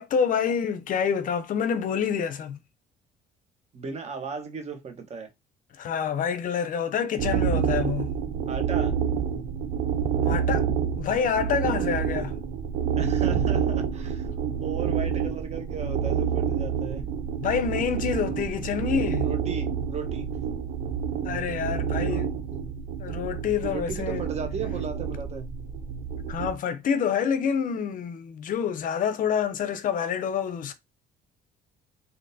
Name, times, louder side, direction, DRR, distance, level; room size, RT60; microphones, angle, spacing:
voice 1, 0.0-2.6 5.7-8.1 10.2-10.7 11.0-12.3 17.4-19.3 21.2-22.3 23.0-24.2 26.3-30.7, left 7 dB, 55° left, 0.5 m, -27 dB
voice 2, 3.7-5.3 8.5-9.0 13.0-14.3 14.6-17.0 19.2-20.3 22.0-22.2 22.5-22.6 23.7-25.5, right 5 dB, 40° right, 1.0 m, -36 dB
sound 1, 7.2-26.5, right 7 dB, 70° right, 0.6 m, -28 dB
3.6 x 2.6 x 2.7 m
cardioid pair, 110°, 17 cm